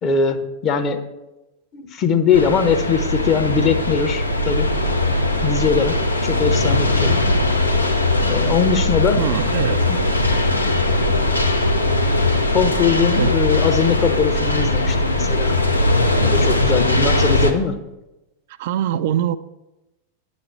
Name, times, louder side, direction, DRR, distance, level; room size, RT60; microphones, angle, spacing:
voice 1, 0.0-1.0 1.7-4.7 5.4-5.9 6.2-7.2 8.2-9.2 9.9-10.0 12.5-15.6 16.2-17.8, left 6 dB, 30° left, 7 dB, 0.8 m, -20 dB
sound 1, 2.3-17.5, left 2 dB, 85° left, 0.7 m, -19 dB
voice 2, 9.2-10.1 13.1-13.4 16.9-17.0 18.6-19.4, right 10 dB, 50° right, 12 dB, 0.3 m, -23 dB
8.8 x 4.2 x 6.7 m, 0.99 s
figure-of-eight pair, 90°, 0 cm